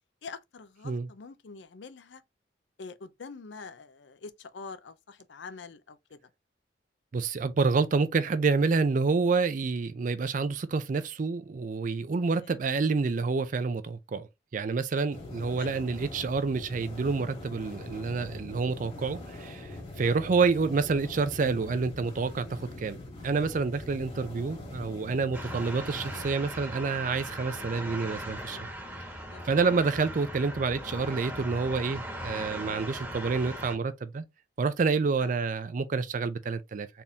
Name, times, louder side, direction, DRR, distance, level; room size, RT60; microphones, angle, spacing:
voice 1, 0.2-2.2 2.8-6.2 12.4-12.5 15.6-15.7 20.0-20.2 25.5-25.6 29.3-29.6 35.2-35.4, left 4 dB, 70° left, 0.5 m, -45 dB
voice 2, 7.1-14.3 14.5-23.0 23.2-28.6 29.4-34.2 34.6-36.9, right 4 dB, 45° right, 0.4 m, -28 dB
sound 1, 15.1-26.2, left 2 dB, 30° left, 1.9 m, -43 dB
sound 2, 25.3-33.7, equal, 10° right, 1.2 m, -39 dB
4.2 x 3.5 x 2.7 m
head